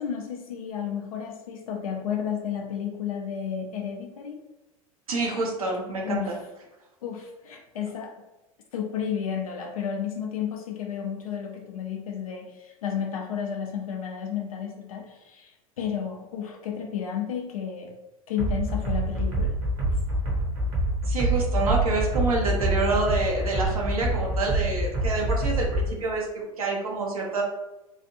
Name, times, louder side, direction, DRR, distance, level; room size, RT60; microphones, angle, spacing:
voice 1, 0.0-4.4 6.0-6.4 7.0-8.1 8.7-17.9 18.3-19.5 19.8-20.0, left 8 dB, 70° left, 2 dB, 0.5 m, -32 dB
voice 2, 5.1-6.4 21.1-27.4, right 3 dB, 75° right, 0 dB, 0.8 m, -27 dB
sound 1, 18.4-25.9, right 1 dB, 50° right, 1.0 m, -26 dB
3.1 x 2.4 x 2.8 m, 0.99 s
figure-of-eight pair, 85°, 19 cm